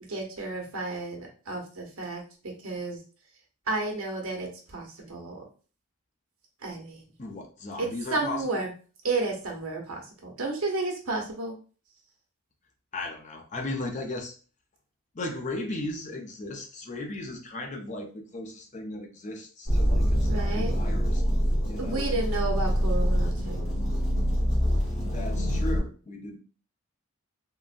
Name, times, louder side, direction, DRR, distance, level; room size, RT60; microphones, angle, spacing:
voice 1, 0.1-2.2 2.6-3.0 3.7-5.4 6.6-7.1 7.8-8.7 9.0-11.5 20.3-20.7 21.8-23.7, right 3 dB, 85° right, 1 dB, 1.0 m, -32 dB
voice 2, 7.2-8.7 12.9-14.3 15.1-21.2 21.6-22.1 25.1-26.4, left 2 dB, 35° left, 3 dB, 0.5 m, -36 dB
sound 1, 19.7-25.8, equal, 80° left, 1.4 m, -25 dB
3.7 x 2.1 x 2.5 m, 0.37 s
head